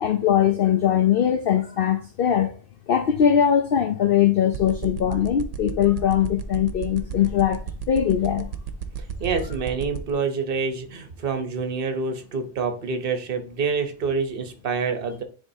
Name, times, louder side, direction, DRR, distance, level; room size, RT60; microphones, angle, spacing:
voice 1, 0.0-2.5 2.9-7.6 7.9-8.5, left 9 dB, 60° left, 0.7 m, -21 dB
sound 1, 4.5-10.1, right 10 dB, 90° right, 1.0 m, -32 dB
voice 2, 9.2-15.2, right 5 dB, 55° right, 1.0 m, -27 dB
10.0 x 3.6 x 2.7 m
omnidirectional pair, 1.2 m